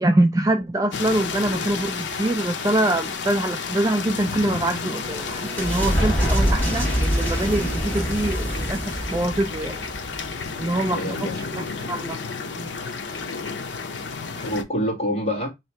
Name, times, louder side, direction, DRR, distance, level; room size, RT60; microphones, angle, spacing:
voice 1, 0.0-8.8 9.1-9.9 10.6-12.2 12.6-12.7 14.3-14.5, right 1 dB, 20° right, 0.3 m, -24 dB
sound 1, 0.9-14.6, left 5 dB, 85° left, 0.6 m, -31 dB
sound 2, 4.7-10.9, equal, 10° left, 1.9 m, -26 dB
voice 2, 10.4-11.4 14.4-15.5, equal, 35° left, 1.4 m, -27 dB
3.2 x 2.9 x 4.3 m
head